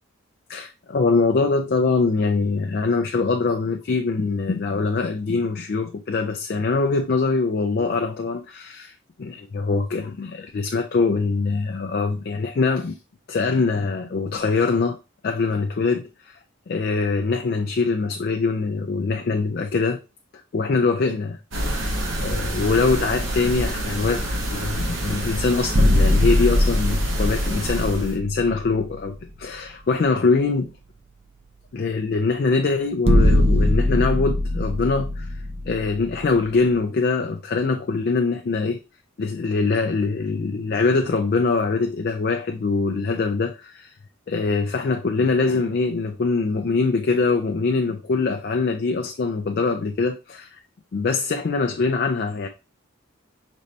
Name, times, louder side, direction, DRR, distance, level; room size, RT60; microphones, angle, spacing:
voice 1, 0.5-13.0 13.3-15.0 15.2-16.4 16.7-20.0 20.5-21.4 21.7-21.8 22.2-30.7 31.7-35.4 35.7-38.8 39.2-43.9 44.3-50.6 50.9-52.5, left 4 dB, 50° left, 0.4 m, -23 dB
sound 1, 21.5-28.2, equal, 70° right, 1.1 m, -27 dB
sound 2, 25.7-29.2 29.6-29.7 33.0-36.6, left 1 dB, 30° right, 0.5 m, -21 dB
5.1 x 3.2 x 2.7 m
head